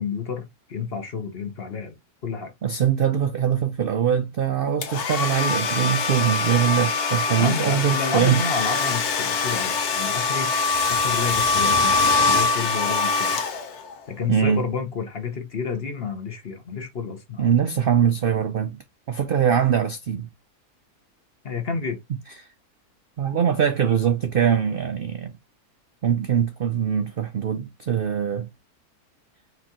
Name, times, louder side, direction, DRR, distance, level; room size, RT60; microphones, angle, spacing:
voice 1, 0.0-2.5 7.3-10.5 10.9-12.0 12.3-13.4 14.1-17.5 21.4-22.0, left 5 dB, 45° left, 1.1 m, -30 dB
voice 2, 2.6-8.4 14.3-14.6 17.4-18.8 19.1-20.3 23.2-25.3 26.0-28.5, right 8 dB, 75° right, 0.5 m, -22 dB
Domestic sounds home sounds, 4.8-14.0, left 4 dB, 75° left, 1.5 m, -23 dB
4.6 x 3.7 x 2.8 m
omnidirectional pair, 1.6 m